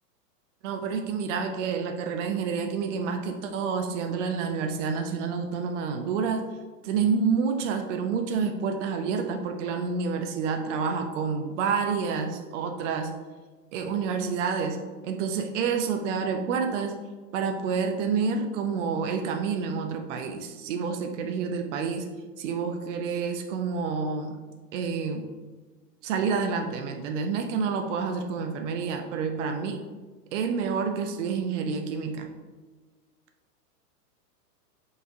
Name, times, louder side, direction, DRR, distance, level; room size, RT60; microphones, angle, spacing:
voice 1, 0.6-6.5 6.8-13.2 13.7-17.0 17.3-22.1 22.4-24.4 24.7-25.3 26.0-29.8 30.3-32.3, right 5 dB, 50° right, 5 dB, 0.5 m, -28 dB
4.5 x 3.1 x 2.6 m, 1.3 s
hypercardioid pair, 120°, 49 cm